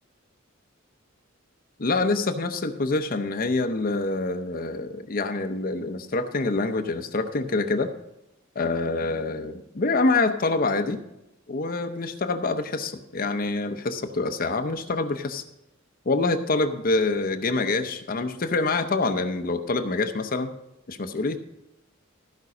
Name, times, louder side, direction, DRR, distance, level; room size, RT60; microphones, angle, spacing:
voice 1, 1.8-7.9 8.6-11.0 11.5-15.4 16.1-20.5 20.9-21.4, left 3 dB, 45° left, 8 dB, 0.7 m, -26 dB
14.5 x 5.3 x 6.0 m, 0.88 s
head